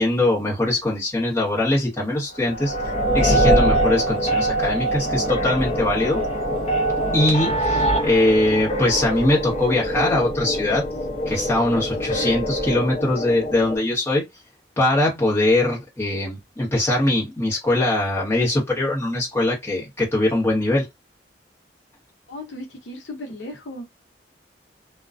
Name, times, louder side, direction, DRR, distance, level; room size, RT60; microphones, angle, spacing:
voice 1, 0.0-2.7 3.1-6.2 7.1-10.8 11.3-14.2 14.8-20.9, left 1 dB, 15° left, 1.2 m, -21 dB
sound 1, 2.4-13.8, right 1 dB, 35° left, 0.6 m, -23 dB
voice 2, 22.3-23.8, left 1 dB, 85° left, 0.8 m, -36 dB
2.3 x 2.2 x 2.4 m
head